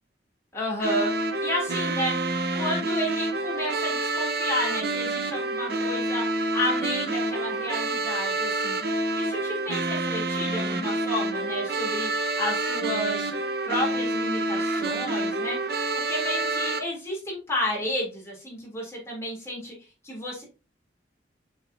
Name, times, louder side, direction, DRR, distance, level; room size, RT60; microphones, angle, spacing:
voice 1, 0.5-1.1 1.4-8.8 9.1-13.3 13.6-19.7 20.0-20.4, left 1 dB, 15° left, -3 dB, 3.3 m, -31 dB
sound 1, 0.8-16.8, right 2 dB, 55° right, 0.9 m, -28 dB
7.1 x 4.9 x 2.8 m, 0.30 s
head